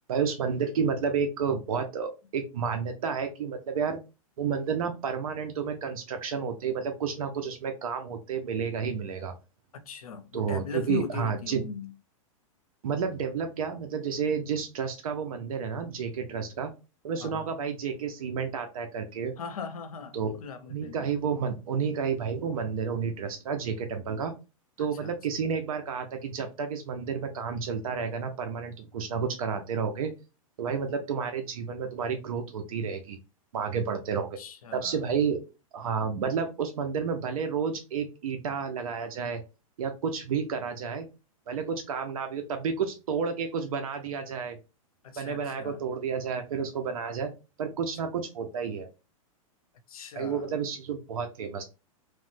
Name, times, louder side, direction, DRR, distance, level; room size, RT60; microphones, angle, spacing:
voice 1, 0.1-4.0 4.4-9.3 10.3-11.6 12.8-16.7 17.0-19.3 20.1-20.4 20.7-24.3 24.8-30.1 30.6-33.2 33.5-34.4 34.7-35.4 35.7-39.4 39.8-41.1 41.5-44.6 45.2-47.3 47.6-48.9 50.1-51.6, right 6 dB, 80° right, 0.6 m, -31 dB
voice 2, 9.9-11.9 17.2-17.5 19.4-21.1 25.0-25.1 34.4-35.0 45.0-45.9 49.9-50.5, left 6 dB, 90° left, 0.6 m, -39 dB
3.0 x 2.1 x 3.1 m
hypercardioid pair, 135°, 18 cm